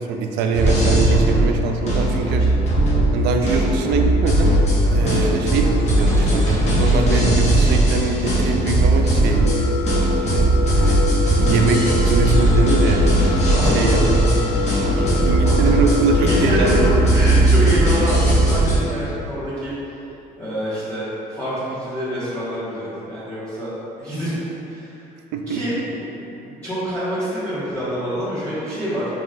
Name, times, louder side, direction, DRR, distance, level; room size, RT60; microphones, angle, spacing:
voice 1, 0.0-2.4 3.1-4.6 4.9-5.7 5.9-9.6 10.3-13.0 13.6-14.0 15.2-17.1 25.3-25.8, right 4 dB, 85° right, 4 dB, 0.4 m, -23 dB
sound 1, 0.5-18.8, right 1 dB, 40° left, 1.0 m, -18 dB
voice 2, 5.0-5.3 13.5-14.1 14.8-19.7 20.4-23.7 24.0-24.4 24.7-24.9 25.5-29.1, equal, 10° left, -17 dB, 1.5 m, -27 dB
sound 2, 9.3-17.0, left 5 dB, 90° left, 0.8 m, -27 dB
4.9 x 3.0 x 2.5 m, 2.9 s
cardioid pair, 110°, 17 cm